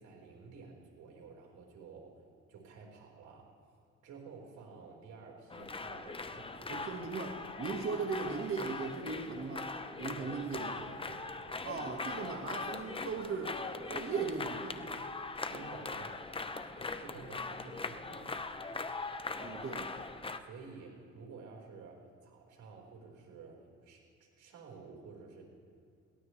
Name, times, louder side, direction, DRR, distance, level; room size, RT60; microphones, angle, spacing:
voice 1, 0.0-2.2 2.5-3.5 4.0-7.0 10.0-11.8 15.5-16.3 16.8-18.6 20.2-25.4, right 4 dB, 80° right, -1 dB, 4.4 m, -52 dB
sound 1, 5.5-20.4, left 3 dB, 20° left, 0.7 m, -41 dB
voice 2, 6.7-10.7 11.6-13.6 13.9-15.0 19.4-19.9, right 4 dB, 45° right, 1 dB, 1.5 m, -38 dB
22.0 x 18.5 x 3.2 m, 2.3 s
cardioid pair, 90°, 30 cm